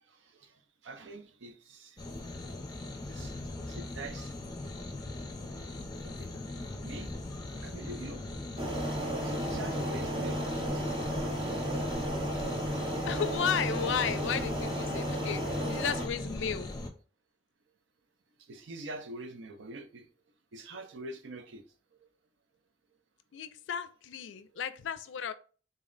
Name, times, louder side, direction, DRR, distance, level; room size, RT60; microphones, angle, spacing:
voice 1, 0.1-0.5 0.8-2.0 3.1-3.3 3.7-4.6 6.0-6.3 6.6-7.1 7.6-8.3 9.2-11.6 18.5-20.1 20.5-21.6, right 2 dB, 80° right, 0.6 m, -45 dB
sound 1, 2.0-16.9, left 2 dB, 20° left, 0.6 m, -40 dB
sound 2, 8.6-16.1, equal, 25° right, 0.7 m, -33 dB
voice 2, 13.1-16.7 23.3-25.3, left 7 dB, 75° left, 0.4 m, -34 dB
3.8 x 2.1 x 3.8 m
head